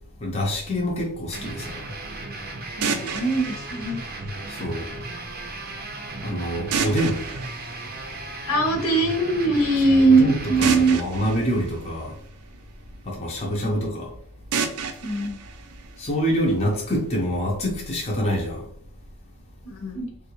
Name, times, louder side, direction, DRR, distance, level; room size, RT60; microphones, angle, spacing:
voice 1, 0.2-1.8 4.5-4.9 6.2-7.2 9.9-12.1 13.1-14.1 16.0-18.7, equal, 30° left, 0.6 m, -26 dB
sound 1, 1.3-10.9, right 2 dB, 40° right, 0.6 m, -36 dB
voice 2, 2.8-4.0 8.4-11.0 13.4-13.8 15.0-15.4 19.6-20.1, right 3 dB, 70° left, 0.8 m, -21 dB
sound 2, 2.8-4.8 6.7-8.7 10.6-12.8 14.5-16.5, right 6 dB, 85° right, 0.4 m, -31 dB
3.2 x 2.3 x 3.0 m
head